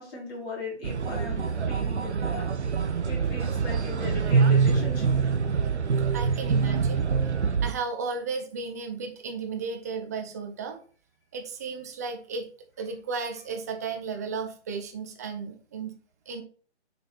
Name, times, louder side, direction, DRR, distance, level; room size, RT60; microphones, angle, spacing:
voice 1, 0.0-2.5 3.0-5.1, left 3 dB, 20° left, -5 dB, 3.3 m, -38 dB
sound 1, 0.8-7.7, right 5 dB, 70° right, 1.0 m, -25 dB
voice 2, 6.1-7.1 7.6-10.8 11.3-12.5 12.8-16.0 16.3-16.4, right 4 dB, 15° right, 5 dB, 0.5 m, -34 dB
6.8 x 4.3 x 4.5 m, 0.42 s
figure-of-eight pair, 140°, 35 cm